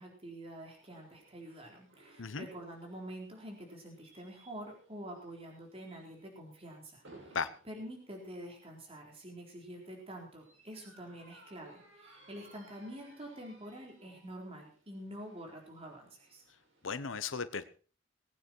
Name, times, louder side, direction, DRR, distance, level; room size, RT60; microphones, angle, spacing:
voice 1, 0.0-7.4 7.7-16.4, right 1 dB, 30° right, 0 dB, 4.2 m, -47 dB
sound 1, 0.7-17.0, right 2 dB, 80° right, 6.6 m, -62 dB
voice 2, 16.8-17.6, left 5 dB, 85° left, 13 dB, 0.9 m, -36 dB
20.5 x 9.4 x 4.6 m, 0.39 s
head